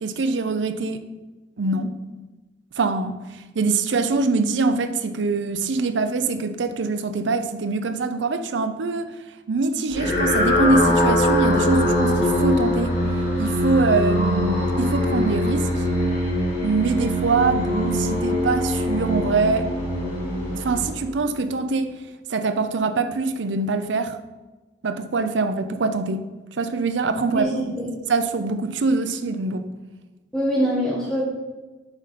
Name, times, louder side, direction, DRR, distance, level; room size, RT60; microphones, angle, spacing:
voice 1, 0.0-1.0 1.6-1.9 2.8-3.2 3.5-9.1 9.5-13.0 13.4-15.7 16.6-19.7 20.5-21.9 22.3-24.2 24.8-26.2 26.5-27.5 28.1-29.6, right 3 dB, 80° right, 10 dB, 0.6 m, -23 dB
sound 1, 9.9-21.4, left 1 dB, 40° left, 1.8 m, -22 dB
voice 2, 30.3-31.2, equal, 5° left, -6 dB, 1.5 m, -23 dB
7.2 x 5.2 x 4.1 m, 1.2 s
head